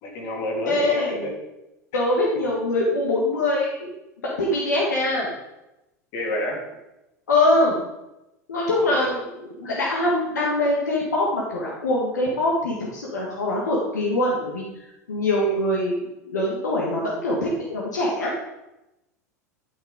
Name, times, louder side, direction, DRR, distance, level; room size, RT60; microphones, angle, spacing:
voice 1, 0.0-1.3 1.9-2.0 6.1-6.6 8.9-9.1 15.3-15.6, left 1 dB, 50° left, 0 dB, 2.8 m, -29 dB
voice 2, 0.6-1.2 1.9-3.9 4.4-5.3 7.3-7.9 8.5-9.2 9.6-18.3, left 1 dB, 80° left, -4 dB, 1.7 m, -23 dB
12.0 x 5.9 x 3.8 m, 0.95 s
figure-of-eight pair, 85°, 9 cm